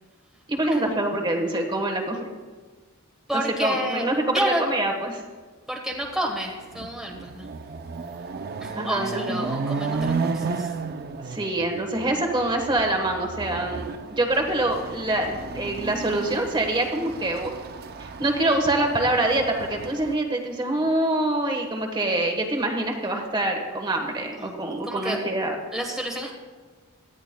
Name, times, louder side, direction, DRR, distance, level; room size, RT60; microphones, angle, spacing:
voice 1, 0.5-2.3 3.3-5.2 8.8-9.4 11.2-17.5 18.0-25.5, right 1 dB, 20° right, 2 dB, 1.3 m, -25 dB
voice 2, 3.3-4.1 4.3-4.6 5.7-7.5 8.6-10.7 24.3-25.3 25.7-26.3, right 1 dB, ahead, -1 dB, 1.2 m, -30 dB
Chatter / Car passing by / Motorcycle, 6.1-6.2 6.6-20.1, right 4 dB, 45° right, 0.5 m, -33 dB
18.0 x 12.5 x 2.2 m, 1.4 s
head